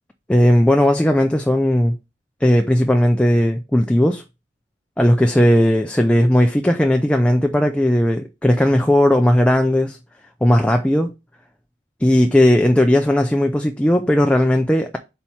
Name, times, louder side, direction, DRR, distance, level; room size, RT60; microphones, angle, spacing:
voice 1, 0.3-2.0 2.4-4.2 5.0-10.0 10.4-11.1 12.0-15.0, left 1 dB, 5° left, 0.4 m, -16 dB
4.4 x 4.4 x 5.6 m
head